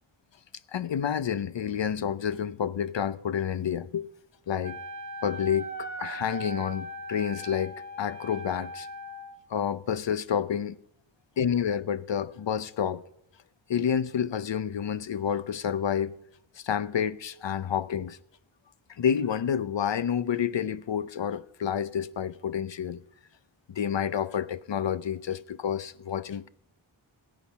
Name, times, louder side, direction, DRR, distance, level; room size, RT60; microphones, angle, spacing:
voice 1, 0.7-4.1 4.5-4.8 5.2-8.9 9.5-10.8 11.4-13.0 13.7-16.1 16.6-18.2 19.0-23.0 23.7-26.5, left 8 dB, 65° left, 0.8 m, -29 dB
Wind instrument woodwind instrument, 4.6-9.4, right 1 dB, 40° right, 1.1 m, -39 dB
16.0 x 10.5 x 5.7 m
wide cardioid pair, 70°, 48 cm